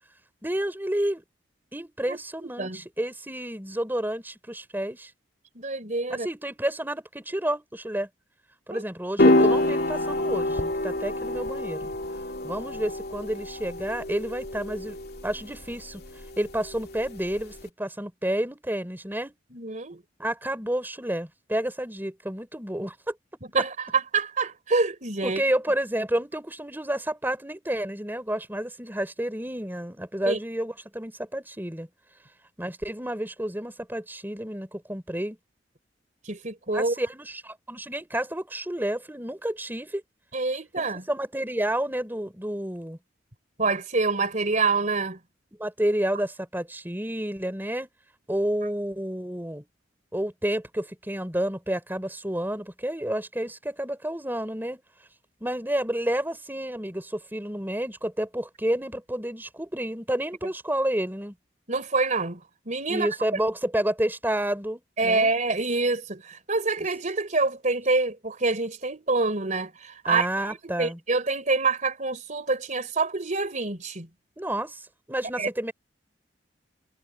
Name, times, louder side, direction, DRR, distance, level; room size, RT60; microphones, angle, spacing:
voice 1, 0.4-1.2 1.7-5.1 6.1-8.1 8.7-11.9 12.4-15.0 15.2-16.0 16.4-19.3 20.2-23.1 25.2-31.9 32.6-35.4 36.7-40.0 40.8-43.0 45.6-47.9 48.3-49.7 50.1-54.8 55.4-61.3 62.9-65.3 70.0-71.0 74.4-75.7, right 1 dB, 10° right, 3.4 m, -30 dB
voice 2, 2.1-2.8 5.5-6.3 8.7-8.8 19.5-20.0 23.5-25.4 30.2-30.4 36.2-36.9 40.3-41.0 43.6-45.2 61.7-62.4 62.6-63.4 65.0-74.1 75.4-75.5, right 3 dB, 40° right, 3.5 m, -26 dB
sound 1, 9.2-17.6, left 1 dB, 55° left, 2.7 m, -27 dB
head